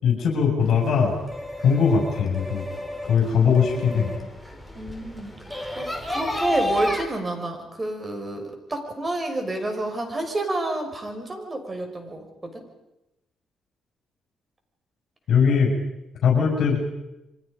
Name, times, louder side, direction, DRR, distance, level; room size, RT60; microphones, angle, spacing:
voice 1, 0.0-1.1 1.6-2.6 3.0-4.1 15.3-15.7 16.2-16.8, left 6 dB, 70° left, 0 dB, 6.1 m, -20 dB
sound 1, 0.6-7.0, left 1 dB, ahead, 4.1 m, -32 dB
voice 2, 3.3-4.2 4.8-5.3 5.8-8.4 8.7-12.3 12.5-12.6, right 2 dB, 25° right, 4 dB, 5.9 m, -29 dB
28.0 x 24.0 x 5.2 m, 0.93 s
cardioid pair, 90°, 0 cm